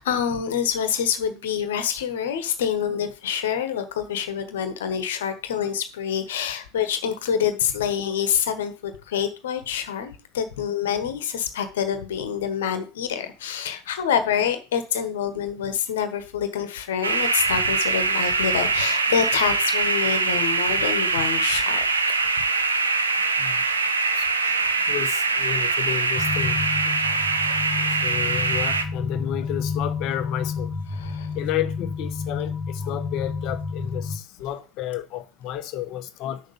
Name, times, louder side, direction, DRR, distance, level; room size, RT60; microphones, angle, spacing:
voice 1, 0.0-21.9 24.5-24.7 27.7-28.0 30.9-31.4, left 8 dB, 65° left, 1.4 m, -26 dB
sound 1, 17.0-28.8, right 4 dB, 80° right, 0.9 m, -23 dB
voice 2, 24.9-26.6 26.8-27.2 27.4-30.7 31.3-36.4, left 11 dB, 45° left, 1.1 m, -31 dB
sound 2, 26.2-34.2, left 5 dB, 30° left, 1.7 m, -30 dB
7.2 x 6.6 x 5.6 m
figure-of-eight pair, 80°, 0 cm